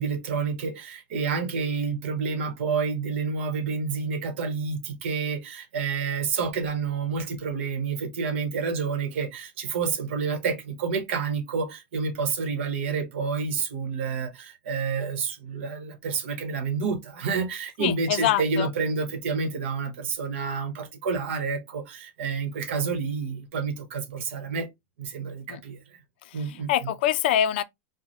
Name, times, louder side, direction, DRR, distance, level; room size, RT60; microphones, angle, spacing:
voice 1, 0.0-24.7 25.0-25.8 26.3-26.7, right 5 dB, 75° right, 1.1 m, -29 dB
voice 2, 17.8-18.7 25.5-25.6 26.2-27.6, left 11 dB, 55° left, 0.4 m, -25 dB
4.6 x 2.1 x 3.1 m
supercardioid pair, 180°, 7 cm